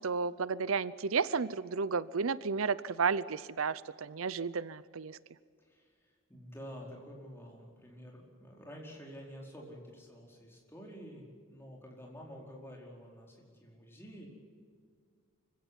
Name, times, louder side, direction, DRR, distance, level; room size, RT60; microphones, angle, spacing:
voice 1, 0.0-5.2, right 5 dB, 80° right, 18 dB, 0.6 m, -32 dB
voice 2, 5.6-14.3, equal, 10° left, -1 dB, 4.7 m, -49 dB
25.0 x 16.5 x 9.8 m, 2.1 s
head